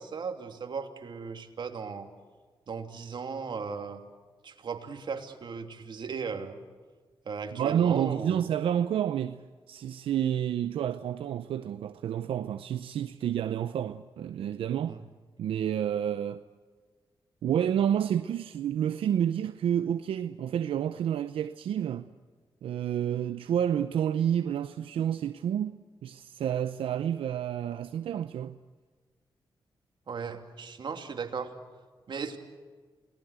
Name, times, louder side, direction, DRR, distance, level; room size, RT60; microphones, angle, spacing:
voice 1, 0.0-2.1 2.7-4.0 4.4-6.6 7.2-8.4 14.9-15.0 30.1-31.5 32.1-32.4, right 5 dB, 60° right, 2.8 m, -37 dB
voice 2, 7.5-15.0 15.4-16.4 17.4-22.1 22.6-28.6, right 9 dB, 90° right, 0.7 m, -29 dB
29.0 x 19.5 x 8.1 m
cardioid pair, 80°, 9 cm